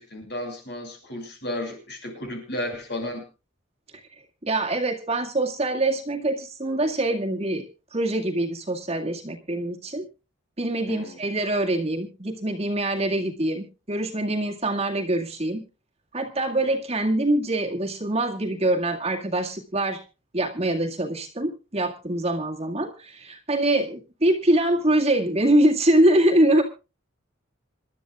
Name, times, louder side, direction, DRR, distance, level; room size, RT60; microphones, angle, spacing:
voice 1, 0.0-3.2 10.9-11.2, left 1 dB, 55° left, 3 dB, 7.5 m, -33 dB
voice 2, 4.4-7.6 7.9-10.1 10.6-15.6 16.1-20.0 20.3-26.6, right 1 dB, 30° right, 0 dB, 1.9 m, -24 dB
27.5 x 12.5 x 2.4 m, 0.31 s
head